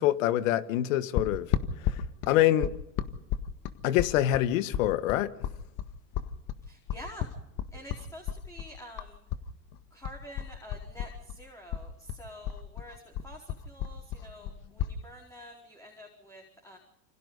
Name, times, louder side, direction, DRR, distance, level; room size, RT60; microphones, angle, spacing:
voice 1, 0.0-1.5 2.3-2.7 3.8-5.3, left 13 dB, 75° left, 13 dB, 1.6 m, -25 dB
sound 1, 1.2-9.5 9.7-11.4 11.7-15.0, left 10 dB, 50° left, 1.8 m, -33 dB
voice 2, 6.6-7.3 7.7-9.2 9.9-16.8, equal, 10° left, 0 dB, 4.6 m, -48 dB
28.5 x 26.0 x 4.1 m, 0.82 s
supercardioid pair, 110°, 40 cm